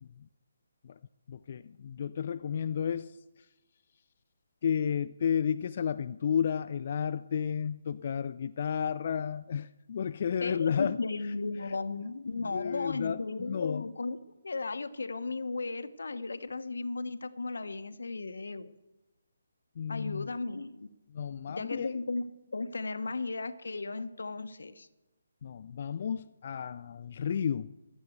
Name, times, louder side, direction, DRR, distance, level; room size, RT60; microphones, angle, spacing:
voice 1, 1.3-3.2 4.6-11.0 12.4-13.9 19.8-20.3 21.1-21.9 25.4-27.7, left 7 dB, 40° left, 10 dB, 0.3 m, -32 dB
voice 2, 10.4-14.2 14.4-18.7 19.9-20.9 21.5-22.3 22.5-24.9, left 3 dB, 80° left, 12 dB, 0.9 m, -35 dB
13.0 x 7.4 x 7.9 m, 1.0 s
hypercardioid pair, 165°, 0 cm